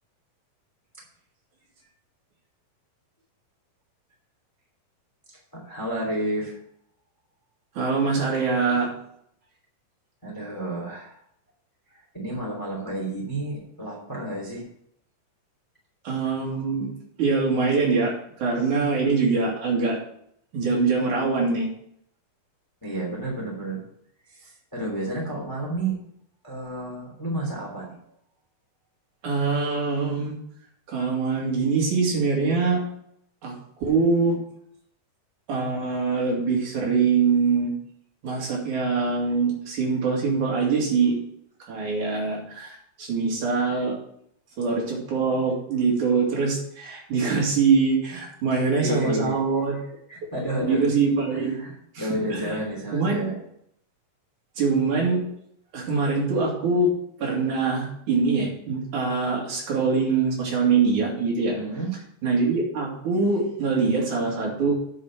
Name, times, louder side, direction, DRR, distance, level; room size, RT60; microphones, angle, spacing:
voice 1, 5.5-6.6 10.2-11.2 11.9-14.7 22.8-23.8 24.3-25.9 26.4-28.0 48.5-49.4 50.1-50.8 51.3-53.4 61.5-61.9, right 1 dB, 5° left, -2 dB, 2.3 m, -31 dB
voice 2, 7.8-8.9 16.1-16.9 17.2-18.1 18.4-20.0 20.5-21.7 29.2-30.4 30.9-32.8 33.4-33.5 33.8-34.4 35.5-37.7 38.2-41.2 41.7-43.9 44.6-49.8 50.6-51.6 52.0-52.1 52.3-52.6 52.9-53.2 54.6-55.2 55.7-56.9 57.2-61.6 62.2-64.7, right 4 dB, 65° right, -2 dB, 3.6 m, -23 dB
9.4 x 5.1 x 7.2 m, 0.70 s
omnidirectional pair, 3.8 m